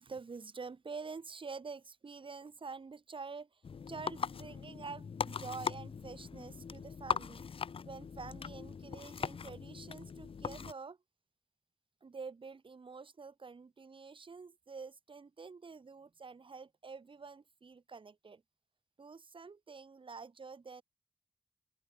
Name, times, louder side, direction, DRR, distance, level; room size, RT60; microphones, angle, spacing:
voice 1, 0.0-7.4 7.8-11.0 12.0-18.4 19.0-20.8, right 4 dB, 65° right, 6.5 m, -47 dB
sound 1, 3.6-10.7, left 6 dB, 75° left, 1.3 m, -40 dB
open air
cardioid pair, 60°, 9 cm